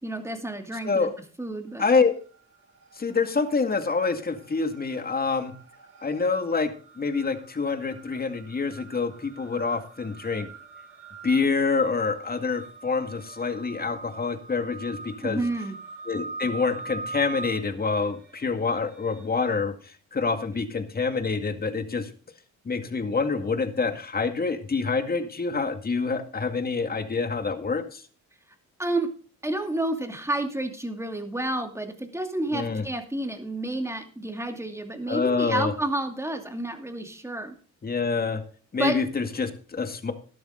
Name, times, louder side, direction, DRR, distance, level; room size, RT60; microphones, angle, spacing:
voice 1, 0.0-1.1 1.4-1.8 15.2-15.8 28.8-29.1 29.4-37.6 38.8-39.0, right 1 dB, 10° right, 5 dB, 2.6 m, -30 dB
sound 1, 1.7-2.4 2.6-19.3, right 3 dB, 60° right, 4.4 m, -43 dB
voice 2, 1.8-2.1 3.0-5.5 6.0-6.7 7.0-10.5 11.2-15.4 16.1-22.1 22.7-28.0 32.5-32.8 35.1-35.7 37.8-38.4 38.7-40.1, left 4 dB, 30° left, 8 dB, 2.1 m, -26 dB
12.5 x 12.0 x 3.9 m, 0.40 s
cardioid pair, 90°, 30 cm